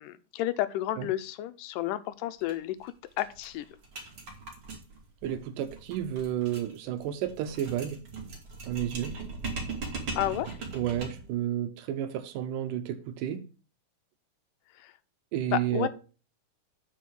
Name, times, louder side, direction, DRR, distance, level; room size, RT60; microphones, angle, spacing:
voice 1, 0.0-3.7 10.2-10.5 14.8-14.9 15.5-15.9, left 13 dB, 90° left, 2.3 m, -31 dB
sound 1, 2.4-2.5 2.8-2.9 3.2-11.3, right 3 dB, 45° right, 2.5 m, -40 dB
voice 2, 5.2-8.0 8.6-9.2 10.7-13.4 15.3-15.9, right 11 dB, 85° right, 2.4 m, -31 dB
8.4 x 4.7 x 6.0 m
omnidirectional pair, 3.7 m